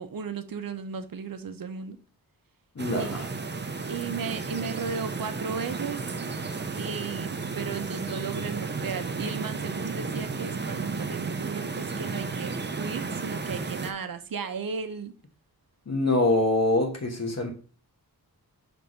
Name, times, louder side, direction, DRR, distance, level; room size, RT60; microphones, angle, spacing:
voice 1, 0.0-2.0 3.0-3.2 3.9-6.0 6.7-15.2, right 5 dB, 60° right, 9 dB, 0.8 m, -35 dB
voice 2, 2.7-3.3 15.9-17.5, left 2 dB, 45° left, 3 dB, 1.3 m, -24 dB
sound 1, 2.8-13.9, right 4 dB, 30° right, 0.6 m, -33 dB
6.1 x 3.5 x 5.1 m, 0.39 s
wide cardioid pair, 115°, 38 cm